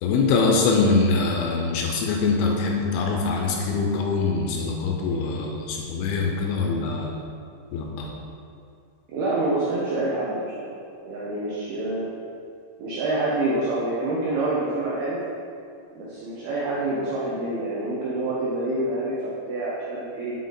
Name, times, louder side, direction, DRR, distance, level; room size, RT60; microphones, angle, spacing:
voice 1, 0.0-7.2 7.7-8.1, left 4 dB, 80° left, 0 dB, 2.9 m, -23 dB
voice 2, 9.1-10.8 11.0-12.1 12.8-15.2 15.9-20.3, right 2 dB, 85° right, -7 dB, 2.2 m, -27 dB
8.5 x 5.0 x 4.0 m, 2.4 s
omnidirectional pair, 5.7 m